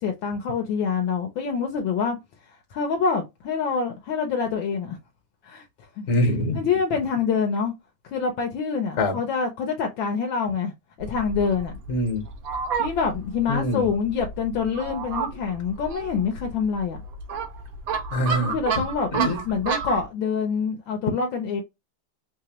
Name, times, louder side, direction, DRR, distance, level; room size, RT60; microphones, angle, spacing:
voice 1, 0.0-2.2 2.7-5.0 5.4-5.6 6.0-6.1 6.6-7.7 8.0-10.7 11.0-11.7 12.8-17.0 18.4-19.1 19.4-21.6, left 5 dB, 75° left, 1.2 m, -26 dB
voice 2, 6.1-6.6 9.0-9.2 11.9-12.2 13.5-13.9 18.1-18.5 19.1-19.4, left 1 dB, 45° left, 1.1 m, -23 dB
Fowl, 11.0-20.0, right 5 dB, 65° right, 0.9 m, -31 dB
3.4 x 2.8 x 2.9 m
omnidirectional pair, 2.4 m